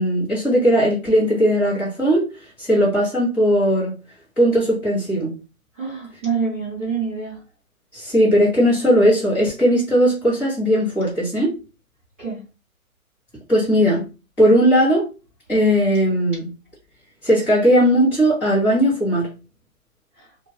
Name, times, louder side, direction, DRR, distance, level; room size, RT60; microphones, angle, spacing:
voice 1, 0.0-4.0 4.4-5.3 7.9-11.5 13.5-14.0 14.4-15.1 15.5-16.5 17.2-19.3, equal, 5° left, 1.2 m, -18 dB
voice 2, 5.7-7.4 12.2-12.4 20.2-20.3, right 5 dB, 10° right, 0.7 m, -26 dB
2.7 x 2.5 x 3.3 m
hypercardioid pair, 165°, 43 cm